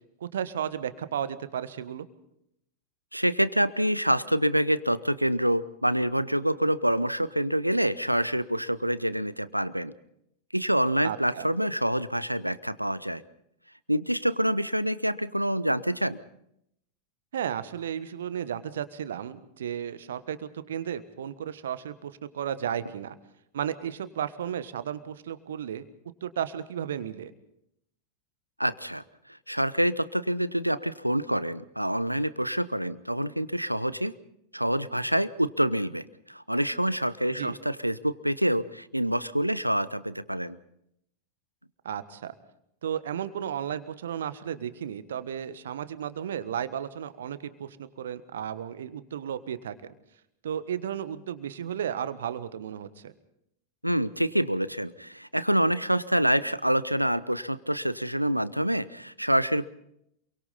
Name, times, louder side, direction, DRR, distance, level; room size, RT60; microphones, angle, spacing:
voice 1, 0.2-2.1 11.0-11.5 17.3-23.1 23.5-25.8 26.2-27.3 37.3-37.6 41.8-42.3 42.8-49.7 50.4-53.1, right 9 dB, 60° right, 13 dB, 1.4 m, -34 dB
voice 2, 3.1-9.9 10.5-13.2 13.9-16.2 28.6-29.0 29.5-34.1 34.5-40.6 53.8-59.7, equal, 90° right, 17 dB, 0.8 m, -26 dB
28.0 x 23.5 x 4.2 m, 0.76 s
figure-of-eight pair, 90°, 0 cm